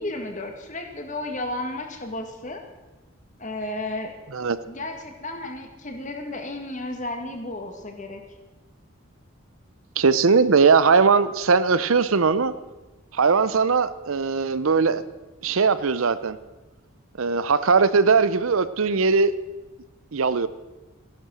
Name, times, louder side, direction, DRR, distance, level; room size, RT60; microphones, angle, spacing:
voice 1, 0.0-2.6 3.4-4.1 4.7-8.2, left 2 dB, 35° left, 4 dB, 1.8 m, -33 dB
voice 2, 10.0-12.5 13.1-15.0 15.4-16.4 17.2-19.3 20.1-20.5, right 5 dB, 75° right, 15 dB, 0.7 m, -19 dB
14.5 x 11.5 x 6.3 m, 1.2 s
head